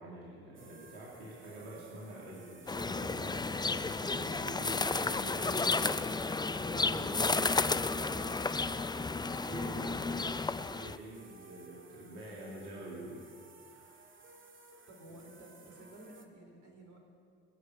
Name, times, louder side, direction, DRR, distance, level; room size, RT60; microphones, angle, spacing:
voice 1, 0.0-6.0 6.5-8.5 9.5-10.3 10.7-13.2 13.5-13.9, right 1 dB, 85° right, -5 dB, 2.7 m, -46 dB
sound 1, 0.5-16.3, right 4 dB, 35° right, 2.0 m, -57 dB
sound 2, 2.7-11.0, left 3 dB, 10° left, 0.5 m, -32 dB
voice 2, 14.9-17.0, right 1 dB, 55° right, 2 dB, 4.5 m, -53 dB
20.5 x 7.5 x 7.7 m, 2.3 s
hypercardioid pair, 55°, 35 cm